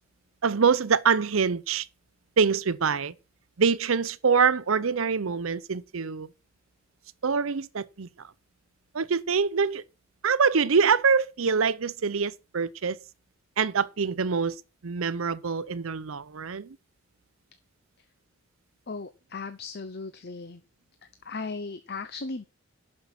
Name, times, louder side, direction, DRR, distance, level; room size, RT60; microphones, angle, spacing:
voice 1, 0.4-1.9 2.4-3.1 3.6-6.3 7.2-8.3 8.9-9.8 10.2-13.0 13.6-14.6 14.8-16.8, right 5 dB, 75° right, 0.6 m, -25 dB
voice 2, 18.9-20.6 21.2-22.5, left 3 dB, 50° left, 0.7 m, -36 dB
11.5 x 5.5 x 5.8 m
head